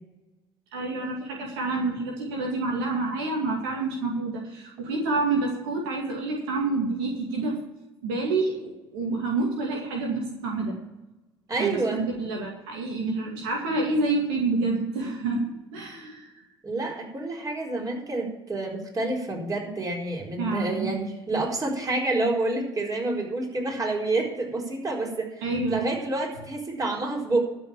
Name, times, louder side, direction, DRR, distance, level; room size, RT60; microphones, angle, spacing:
voice 1, 0.7-7.6 8.0-10.8 11.6-15.4 15.7-16.3 20.4-20.9 25.4-25.9, right 3 dB, 80° right, 0 dB, 2.3 m, -28 dB
voice 2, 11.5-12.0 16.6-25.4 25.7-27.4, right 2 dB, 30° right, -1 dB, 4.4 m, -28 dB
12.5 x 5.6 x 8.9 m, 0.98 s
hypercardioid pair, 65°, 13 cm